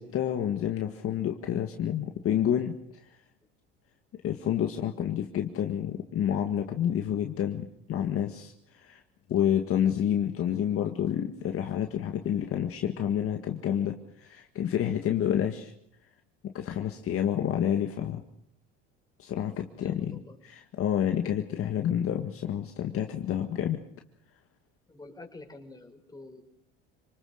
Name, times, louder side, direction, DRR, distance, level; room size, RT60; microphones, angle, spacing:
voice 1, 0.0-2.8 4.2-9.0 9.3-15.7 16.4-18.2 19.2-23.8, left 10 dB, 50° left, 4 dB, 1.9 m, -29 dB
voice 2, 19.7-20.4 24.9-26.4, left 2 dB, 15° left, 2 dB, 5.4 m, -47 dB
28.0 x 20.0 x 6.6 m, 0.72 s
supercardioid pair, 95°, 29 cm